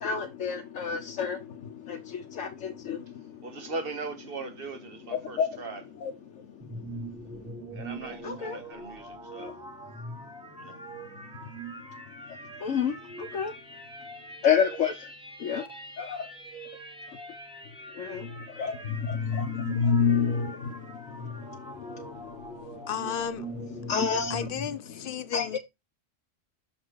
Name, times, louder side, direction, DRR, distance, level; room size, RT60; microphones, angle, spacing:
voice 1, 0.0-3.7 5.1-5.6 6.0-7.8 8.2-8.6 9.3-13.6 14.4-15.1 15.4-15.7 16.0-16.3 17.1-17.2 17.9-22.9 23.4-24.5 24.9-25.6, left 6 dB, 80° left, 1.2 m, -31 dB
voice 2, 3.4-5.8 7.7-9.6 10.6-10.8, right 3 dB, 50° right, 1.3 m, -39 dB
sound 1, 6.6-24.7, right 2 dB, 5° right, 1.3 m, -43 dB
voice 3, 22.9-23.5 24.3-25.6, left 9 dB, 55° left, 0.7 m, -33 dB
6.4 x 4.1 x 4.6 m
omnidirectional pair, 1.3 m